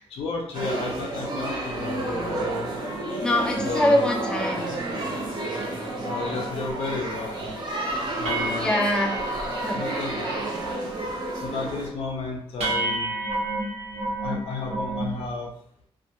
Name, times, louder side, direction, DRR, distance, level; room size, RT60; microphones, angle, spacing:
voice 1, 0.1-2.7 3.6-4.2 6.0-7.6 8.2-8.8 9.7-10.3 11.4-13.1 14.2-15.5, left 4 dB, 70° left, -1 dB, 0.4 m, -32 dB
sound 1, 0.5-11.9, right 2 dB, 50° right, 0.6 m, -31 dB
voice 2, 3.2-4.7 8.6-9.2 9.6-9.8, left 1 dB, 10° left, 0 dB, 0.4 m, -23 dB
sound 2, 6.7-6.8 7.2-7.5 7.8-7.9 8.2-10.1 10.3-10.8 11.1-11.5 11.9-12.0 12.6-15.2, right 2 dB, 85° right, 0.7 m, -31 dB
2.2 x 2.1 x 2.8 m, 0.69 s
wide cardioid pair, 150°, 10 cm